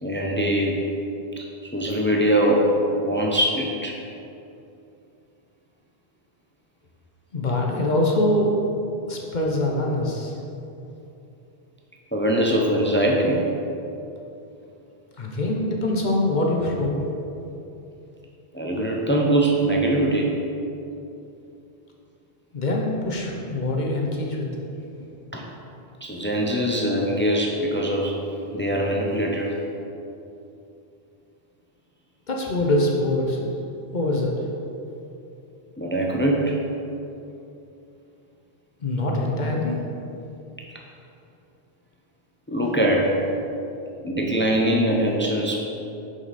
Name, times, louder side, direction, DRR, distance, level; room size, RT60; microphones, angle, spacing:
voice 1, 0.0-0.8 1.4-4.0 12.1-13.4 18.5-20.4 25.3-25.4 26.0-28.2 28.5-29.6 35.8-36.6 42.5-43.2 44.0-45.6, right 1 dB, 15° left, -1 dB, 0.4 m, -22 dB
voice 2, 7.3-8.5 9.1-10.3 15.2-17.0 22.5-24.5 32.3-33.5 33.9-34.4 38.8-39.8, left 1 dB, 45° left, 0 dB, 0.8 m, -24 dB
6.0 x 5.4 x 4.1 m, 2.8 s
omnidirectional pair, 1.2 m